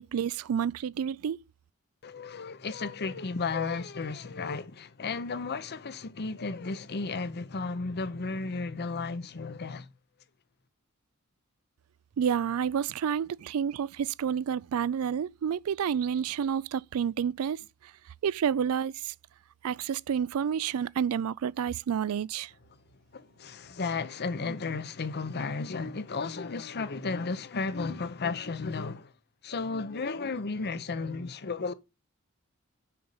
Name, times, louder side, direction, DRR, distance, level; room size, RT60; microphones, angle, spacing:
voice 1, 0.0-1.4 12.2-17.6 18.2-19.1 19.6-22.5, right 8 dB, 70° right, 0.4 m, -29 dB
voice 2, 2.0-9.9 23.1-29.1 29.4-31.7, left 4 dB, 50° left, 0.7 m, -34 dB
6.7 x 5.4 x 7.1 m
head